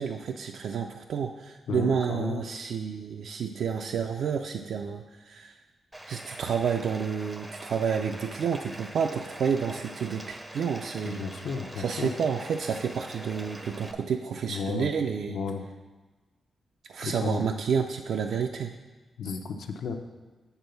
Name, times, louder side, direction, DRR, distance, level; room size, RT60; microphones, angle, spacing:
voice 1, 0.0-5.5 6.1-11.2 11.8-15.4 16.9-18.7, right 6 dB, 70° right, 4 dB, 0.4 m, -30 dB
voice 2, 1.7-2.5 11.0-12.1 14.5-14.9 15.3-15.6 17.0-17.5 19.2-20.0, left 5 dB, 80° left, 5 dB, 0.7 m, -33 dB
Bathtub (filling or washing), 5.9-13.9, right 1 dB, 10° right, 0.5 m, -44 dB
8.0 x 3.9 x 6.8 m, 1.3 s
wide cardioid pair, 180°, 0 cm